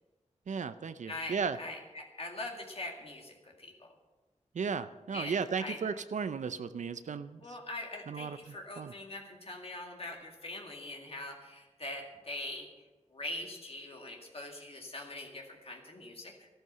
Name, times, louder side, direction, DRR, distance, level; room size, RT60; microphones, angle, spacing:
voice 1, 0.5-1.6 4.5-7.4 8.1-8.4 8.8-8.9, right 6 dB, 85° right, 12 dB, 0.5 m, -35 dB
voice 2, 1.1-3.9 5.1-5.8 7.4-12.9 13.1-16.5, left 2 dB, 55° left, 1 dB, 2.1 m, -43 dB
12.5 x 12.5 x 6.6 m, 1.2 s
wide cardioid pair, 70°, 12 cm